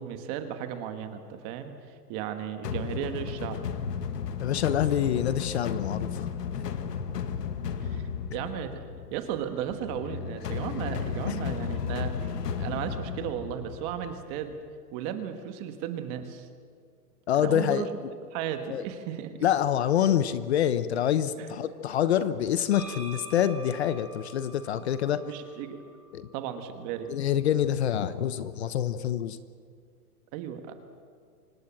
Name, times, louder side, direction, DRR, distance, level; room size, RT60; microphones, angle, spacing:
voice 1, 0.0-1.7 2.1-3.6 7.8-8.0 8.3-8.8 9.1-12.3 12.6-14.6 14.9-16.5 17.4-17.9 18.3-19.5 21.4-21.5 25.3-25.8 26.3-27.1 30.3-30.7, right 9 dB, 25° right, 7 dB, 1.5 m, -35 dB
sound 1, 2.6-14.5, left 7 dB, 85° left, 2.1 m, -34 dB
voice 2, 4.4-6.3 11.3-11.4 17.3-17.9 18.7-18.8 19.4-25.2 26.1-26.3 27.1-29.4, left 10 dB, 45° left, 13 dB, 1.0 m, -26 dB
sound 2, 22.7-26.5, equal, 25° left, 5.4 m, -46 dB
26.0 x 19.0 x 7.4 m, 2.1 s
hypercardioid pair, 165°, 47 cm